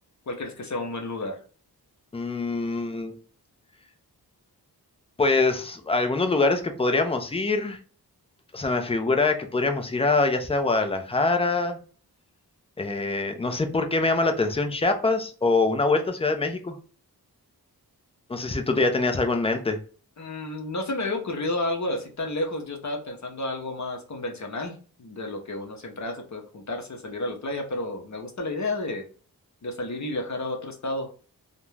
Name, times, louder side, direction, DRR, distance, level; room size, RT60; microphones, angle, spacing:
voice 1, 0.3-1.4 20.2-29.0 29.6-31.1, left 2 dB, 45° left, 2 dB, 0.7 m, -31 dB
voice 2, 2.1-3.2 5.2-7.8 8.5-11.8 12.8-16.8 18.3-19.8, left 3 dB, 15° left, 6 dB, 0.4 m, -24 dB
2.4 x 2.2 x 3.1 m, 0.39 s
wide cardioid pair, 110°, 39 cm